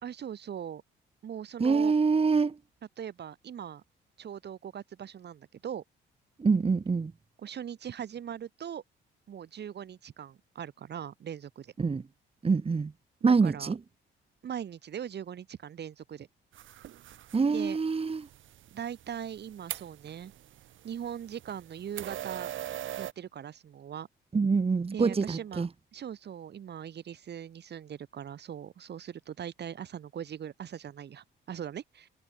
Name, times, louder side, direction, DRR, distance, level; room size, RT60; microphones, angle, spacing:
voice 1, 0.0-0.8 1.2-1.9 3.0-3.8 4.2-5.8 7.4-8.8 9.3-11.7 13.2-13.7 14.4-16.3 17.5-17.8 18.7-20.3 20.8-22.5 23.0-24.1 24.9-25.7 25.9-32.1, right 9 dB, 60° right, 2.9 m, -40 dB
voice 2, 1.6-2.6 6.4-7.1 11.8-12.0 12.4-12.9 13.2-13.8 17.3-18.3 24.3-25.7, right 4 dB, 30° right, 2.1 m, -25 dB
sound 1, 16.5-23.1, right 12 dB, 75° right, 5.5 m, -43 dB
cardioid pair, 90°, 20 cm